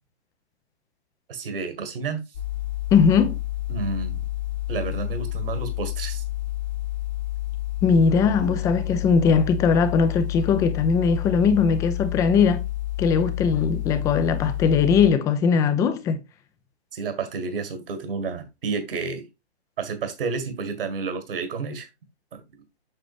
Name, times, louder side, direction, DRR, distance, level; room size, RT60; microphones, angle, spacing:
voice 1, 1.3-2.2 3.7-4.3 4.7-6.2 16.9-19.3 19.8-21.9 22.3-22.4, right 5 dB, 55° right, 1.9 m, -30 dB
sound 1, 2.3-15.1, left 15 dB, 40° left, 0.9 m, -29 dB
voice 2, 2.9-3.4 7.8-12.6 13.0-16.2, left 6 dB, 10° left, 0.5 m, -20 dB
7.7 x 6.2 x 2.5 m
figure-of-eight pair, 130°, 33 cm